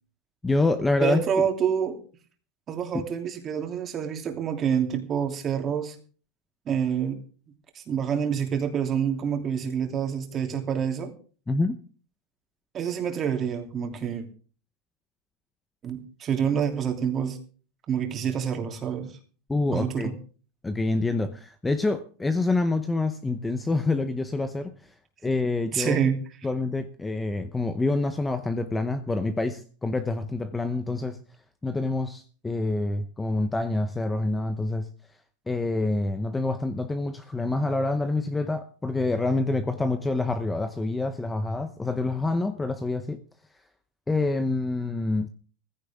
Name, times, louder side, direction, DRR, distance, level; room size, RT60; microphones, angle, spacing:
voice 1, 0.4-1.2 11.5-11.8 19.5-20.1 20.6-24.9 25.2-26.0 26.4-31.2 31.6-34.9 35.5-43.2 44.1-45.3, left 2 dB, 10° left, 10 dB, 0.8 m, -27 dB
voice 2, 1.0-2.0 2.7-5.9 6.7-7.2 7.7-11.1 12.7-14.3 15.8-17.4 17.9-19.1 19.7-20.1 25.7-26.2, right 8 dB, 30° right, 4 dB, 2.9 m, -27 dB
16.0 x 15.5 x 3.6 m, 0.41 s
supercardioid pair, 135°, 0 cm